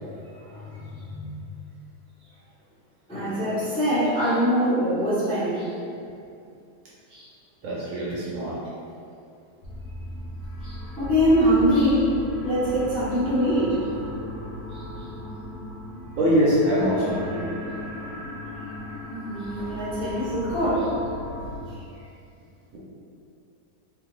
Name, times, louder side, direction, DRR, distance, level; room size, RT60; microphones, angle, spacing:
voice 1, 0.4-1.3 3.1-5.7 7.1-7.3 8.1-8.2 10.6-13.8 14.7-14.8 17.7-17.8 19.1-21.0 21.7-21.8, equal, 10° left, -12 dB, 0.3 m, -24 dB
voice 2, 7.6-8.6 16.2-17.5 22.7-22.8, equal, 65° right, -7 dB, 0.9 m, -23 dB
sound 1, 9.6-21.6, left 1 dB, 75° left, 1.1 m, -37 dB
2.7 x 2.4 x 3.1 m, 2.5 s
omnidirectional pair, 1.7 m